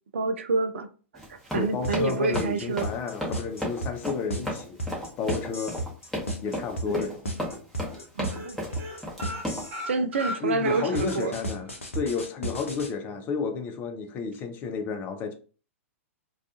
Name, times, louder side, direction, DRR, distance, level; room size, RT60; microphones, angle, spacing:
voice 1, 0.1-0.9 1.3-2.9 6.8-7.1 8.2-8.6 9.9-11.3, right 3 dB, 60° right, 0.3 m, -28 dB
Run, 1.1-9.7, equal, ahead, 0.8 m, -34 dB
voice 2, 1.5-4.8 5.2-5.8 6.4-7.2 10.4-15.3, left 5 dB, 25° left, 0.4 m, -31 dB
sound 1, 1.8-9.8 10.9-12.9, right 1 dB, 70° left, 0.7 m, -33 dB
sound 2, 6.4-7.0 7.4-7.6 7.8-8.0 8.3-11.3 11.6-11.7 12.1-12.2, left 1 dB, 30° right, 0.8 m, -38 dB
2.3 x 2.3 x 2.6 m
figure-of-eight pair, 105°, 7 cm